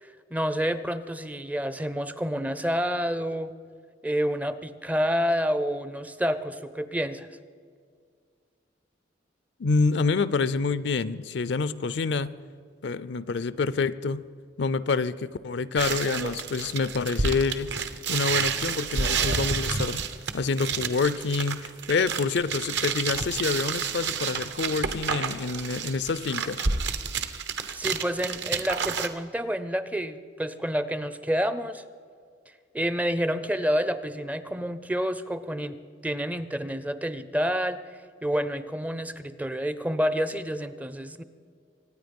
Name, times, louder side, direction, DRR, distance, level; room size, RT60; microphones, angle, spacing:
voice 1, 0.0-3.5 4.0-7.3 27.7-31.8 32.7-35.8 36.0-37.8 38.2-41.2, equal, 10° right, 13 dB, 0.4 m, -28 dB
voice 2, 9.6-12.3 12.8-14.2 14.6-17.8 18.1-20.0 20.3-26.7, left 4 dB, 65° left, 17 dB, 0.5 m, -27 dB
sound 1, 15.8-29.1, right 5 dB, 65° right, 0.9 m, -30 dB
24.5 x 9.7 x 5.3 m, 2.1 s
head